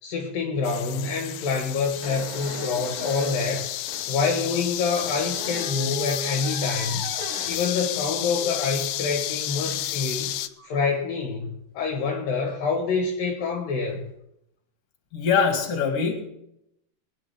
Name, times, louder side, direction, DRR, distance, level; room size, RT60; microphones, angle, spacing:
voice 1, 0.0-3.7 4.1-7.1 7.5-10.4 10.6-14.1, left 4 dB, 70° left, 2 dB, 3.0 m, -27 dB
sound 1, 0.6-10.5, left 14 dB, 90° left, 2.6 m, -31 dB
sound 2, 1.7-1.8 2.0-4.1 5.0-7.7 8.3-8.6 11.4-11.5 12.4-12.7 13.7-14.0, right 1 dB, 85° right, 4.9 m, -38 dB
voice 2, 15.1-16.2, left 6 dB, 45° left, 3 dB, 3.1 m, -23 dB
21.5 x 9.6 x 3.5 m, 0.81 s
omnidirectional pair, 4.5 m